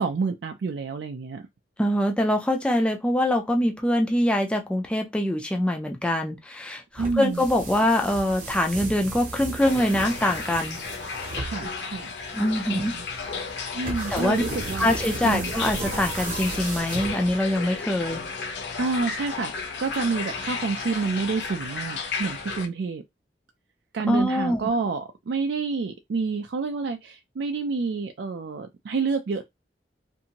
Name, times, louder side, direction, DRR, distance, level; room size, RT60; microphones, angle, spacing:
voice 1, 0.0-1.5 7.0-7.4 11.4-12.1 12.6-13.0 13.7-14.9 15.2-15.5 18.8-19.5 19.8-23.0 23.9-29.4, right 4 dB, 70° right, 0.4 m, -28 dB
voice 2, 1.8-10.8 12.3-13.0 14.1-14.4 14.8-18.2 24.1-24.7, left 1 dB, 5° left, 0.4 m, -24 dB
sound 1, 6.9-17.6, right 2 dB, 50° right, 0.8 m, -35 dB
sound 2, 9.6-22.7, left 5 dB, 75° left, 0.6 m, -34 dB
2.6 x 2.5 x 2.8 m
head